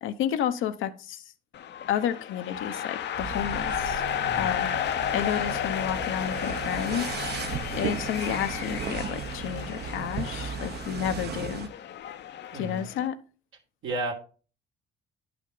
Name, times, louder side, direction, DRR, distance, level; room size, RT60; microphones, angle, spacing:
voice 1, 0.0-1.2 1.9-4.0 4.4-7.2 7.7-11.7 12.5-13.2, left 10 dB, 85° left, 9 dB, 0.9 m, -31 dB
sound 1, 1.5-13.1, left 10 dB, 60° left, 0.6 m, -33 dB
sound 2, 3.1-11.7, right 7 dB, 55° right, 0.9 m, -36 dB
voice 2, 4.1-4.5 7.4-7.7 11.1-11.2 12.5-12.9 13.8-14.1, right 2 dB, 80° right, 0 dB, 2.6 m, -34 dB
10.5 x 5.9 x 3.9 m, 0.36 s
cardioid pair, 90°, 20 cm